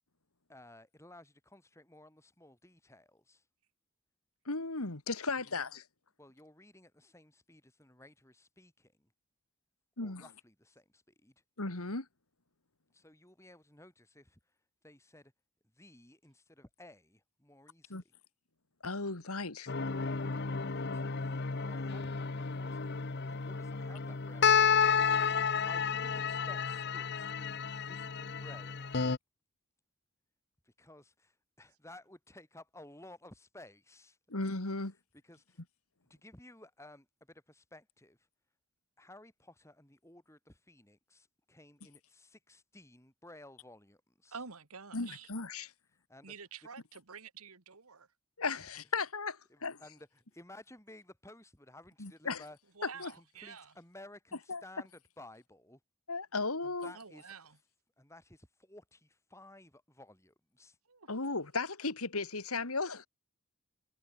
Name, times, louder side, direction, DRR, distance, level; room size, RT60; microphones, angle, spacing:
voice 1, 0.5-3.4 6.2-9.1 10.0-11.3 12.9-14.6 14.8-15.3 15.7-18.0 20.5-25.3 25.7-29.0 30.6-34.2 35.2-35.6 36.1-38.3 39.0-44.4 46.1-46.3 48.6-48.7 49.5-52.6 52.9-55.8 56.6-57.3 58.0-60.8, left 1 dB, 10° left, 4.7 m, -56 dB
voice 2, 4.5-5.8 10.0-10.2 11.6-12.1 17.9-18.0 18.8-19.7 34.3-34.9 44.9-45.7 48.4-49.8 52.0-52.4 52.8-53.1 54.5-54.6 56.1-56.9 61.1-63.1, left 3 dB, 80° left, 2.5 m, -36 dB
sound 1, 19.7-29.2, left 6 dB, 50° left, 0.8 m, -31 dB
voice 3, 44.3-45.3 46.2-48.1 52.8-53.7 56.9-57.6 60.9-61.1, right 5 dB, 80° right, 2.0 m, -48 dB
head